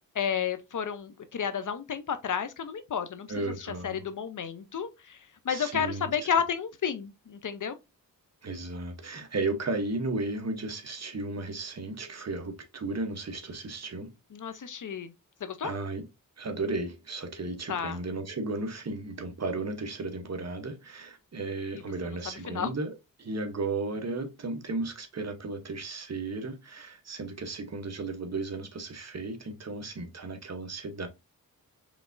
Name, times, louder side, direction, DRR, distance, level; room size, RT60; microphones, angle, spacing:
voice 1, 0.1-7.8 14.3-15.1 15.4-15.7 17.7-18.0 22.0-22.2 22.5-22.7, left 7 dB, 60° left, 0.7 m, -32 dB
voice 2, 3.3-4.1 5.5-6.1 8.4-14.1 15.6-16.0 16.4-22.9 23.2-31.1, right 3 dB, 45° right, 1.0 m, -34 dB
5.1 x 3.4 x 2.6 m
wide cardioid pair, 90°, 35 cm